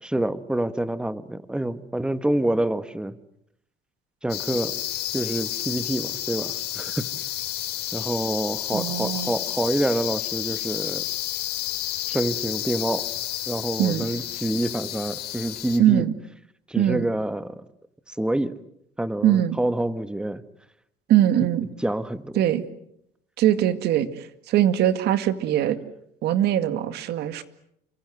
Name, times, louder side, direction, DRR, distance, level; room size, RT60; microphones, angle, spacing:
voice 1, 0.0-3.2 4.2-4.7 5.1-7.1 7.9-11.1 12.1-13.1 13.5-16.0 16.7-17.6 18.1-18.6 19.0-20.4 21.8-22.4, right 1 dB, 5° right, 13 dB, 1.4 m, -27 dB
sound 1, 4.3-15.8, left 13 dB, 70° left, 3.5 m, -31 dB
voice 2, 8.7-9.3 13.8-14.1 15.8-16.1 16.8-17.1 19.2-19.6 21.1-21.7 22.4-22.6 23.4-25.8 26.2-27.4, right 12 dB, 75° right, 12 dB, 2.1 m, -21 dB
29.0 x 25.0 x 7.8 m, 0.76 s
cardioid pair, 110°, 17 cm